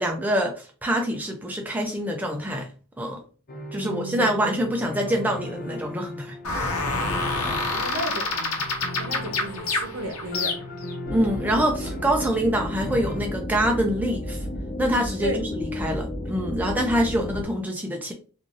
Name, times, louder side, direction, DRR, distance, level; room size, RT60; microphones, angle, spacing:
voice 1, 0.0-2.7 3.0-3.2 3.7-6.4 11.1-14.4 14.8-18.1, equal, 10° right, 0.4 m, -25 dB
sound 1, 3.5-13.2, left 2 dB, 40° left, 0.5 m, -38 dB
voice 2, 3.8-4.4 7.4-10.6 15.2-15.4, right 1 dB, 65° right, 0.7 m, -34 dB
sound 2, 6.4-10.9, left 3 dB, 80° left, 0.8 m, -27 dB
sound 3, 11.0-17.5, left 1 dB, 25° left, 1.1 m, -32 dB
3.1 x 2.5 x 2.5 m
head